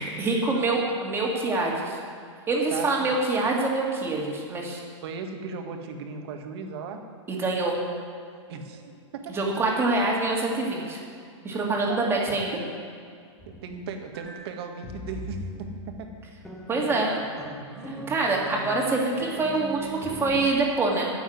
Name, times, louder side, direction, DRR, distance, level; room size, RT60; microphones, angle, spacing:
voice 1, 0.0-2.0 2.5-4.8 7.3-7.8 9.3-11.0 11.4-12.6 16.7-17.1 17.9-21.1, right 3 dB, 15° right, -2 dB, 2.5 m, -25 dB
voice 2, 5.0-7.0 8.5-9.4 11.9-12.2 13.6-15.7 16.0-16.1 17.7-18.1, right 5 dB, 55° right, 4 dB, 1.7 m, -37 dB
sound 1, 13.4-20.5, right 1 dB, ahead, 1.6 m, -40 dB
11.0 x 7.2 x 9.5 m, 2.2 s
hypercardioid pair, 135°, 16 cm